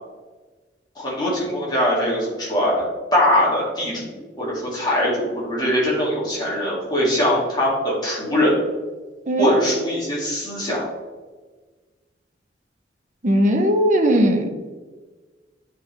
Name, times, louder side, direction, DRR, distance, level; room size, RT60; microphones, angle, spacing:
voice 1, 1.0-2.8 3.1-8.6 9.4-10.9, left 1 dB, 25° left, -6 dB, 2.3 m, -21 dB
voice 2, 13.2-14.5, equal, 45° right, 4 dB, 0.9 m, -18 dB
11.5 x 3.9 x 3.3 m, 1.3 s
head